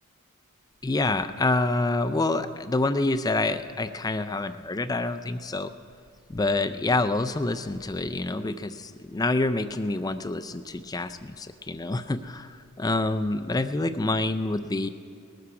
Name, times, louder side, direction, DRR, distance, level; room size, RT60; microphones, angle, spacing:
voice 1, 0.8-5.7 6.3-14.9, left 2 dB, 15° left, 11 dB, 0.4 m, -27 dB
19.5 x 12.5 x 4.8 m, 2.3 s
head